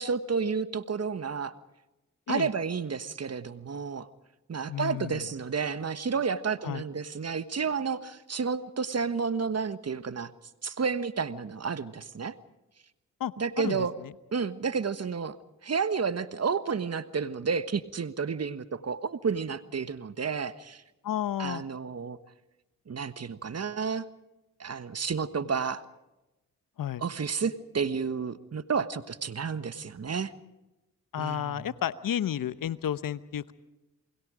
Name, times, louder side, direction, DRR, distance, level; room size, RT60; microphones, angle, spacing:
voice 1, 0.0-1.5 2.3-4.1 4.5-10.3 10.6-12.3 13.4-13.9 14.3-15.4 15.6-20.8 21.4-22.2 22.9-24.1 24.6-25.8 27.0-30.3 31.2-31.6, right 5 dB, 45° right, 13 dB, 1.3 m, -31 dB
voice 2, 4.7-5.2 6.6-6.8 13.2-14.1 21.0-21.6 26.8-27.0 31.1-33.5, left 10 dB, 65° left, 16 dB, 1.0 m, -32 dB
28.0 x 21.5 x 5.1 m, 1.0 s
supercardioid pair, 40°, 35 cm